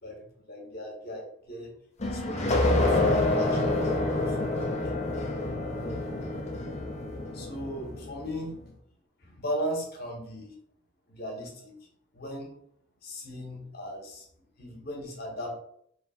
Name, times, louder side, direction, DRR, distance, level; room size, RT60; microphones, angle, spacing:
voice 1, 0.0-1.8 2.1-4.9 5.6-6.0 7.3-8.6 9.2-10.6 11.1-11.8 12.1-12.5 13.0-14.3 14.6-15.6, equal, 50° left, 0 dB, 1.2 m, -38 dB
sound 1, 2.0-8.4, left 2 dB, 35° left, 0.7 m, -27 dB
3.3 x 3.0 x 4.3 m, 0.66 s
head